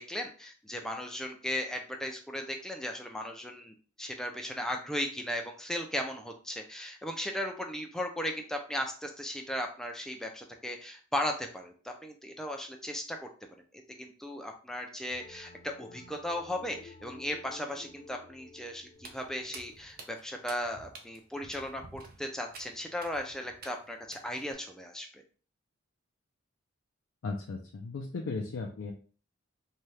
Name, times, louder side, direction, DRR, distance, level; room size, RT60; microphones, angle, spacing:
voice 1, 0.0-13.3 13.7-25.2, left 1 dB, 5° left, 2 dB, 0.4 m, -37 dB
sound 1, 15.1-20.4, left 3 dB, 40° left, 0.6 m, -53 dB
Walk footsteps, 18.9-24.5, right 3 dB, 50° right, 0.5 m, -51 dB
voice 2, 27.2-28.9, left 3 dB, 80° left, 1 dB, 0.4 m, -36 dB
2.7 x 2.3 x 3.2 m, 0.40 s
head